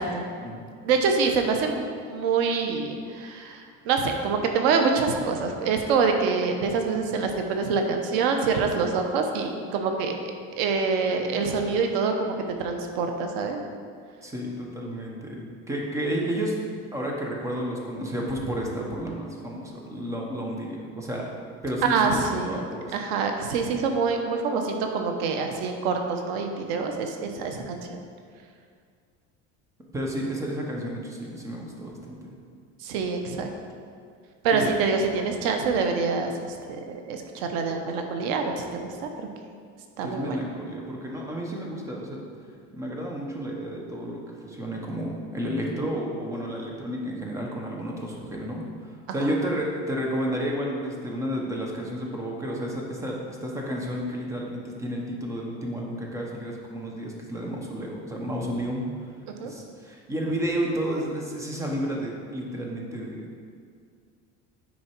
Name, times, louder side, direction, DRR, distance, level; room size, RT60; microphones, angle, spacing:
voice 1, 0.8-10.2 10.6-12.3 12.6-13.6 21.8-28.0 32.8-33.5 34.4-36.3 36.7-39.3 40.0-40.4 49.2-49.3 59.4-59.5, right 5 dB, 90° right, 4 dB, 1.0 m, -26 dB
voice 2, 14.2-16.5 16.9-21.3 21.6-23.0 27.6-27.7 29.9-32.3 34.5-34.7 40.0-42.3 42.7-58.9 59.4-63.2, equal, 10° right, -1 dB, 0.9 m, -31 dB
9.6 x 4.4 x 4.5 m, 2.2 s
cardioid pair, 165°, 30 cm